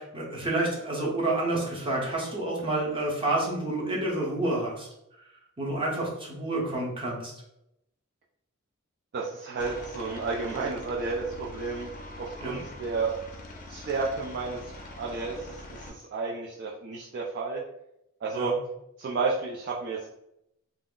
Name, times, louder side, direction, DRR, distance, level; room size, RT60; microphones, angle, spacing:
voice 1, 0.0-4.9 5.6-7.3 12.4-12.6 18.3-18.5, right 2 dB, 25° right, -4 dB, 0.7 m, -29 dB
voice 2, 9.1-11.9 12.2-13.1 13.7-14.7 15.0-17.6 18.2-18.5 19.0-20.1, right 4 dB, 50° right, -4 dB, 0.4 m, -31 dB
Aircraft, 9.6-15.9, left 1 dB, 40° left, 0.5 m, -43 dB
2.3 x 2.0 x 3.6 m, 0.82 s
head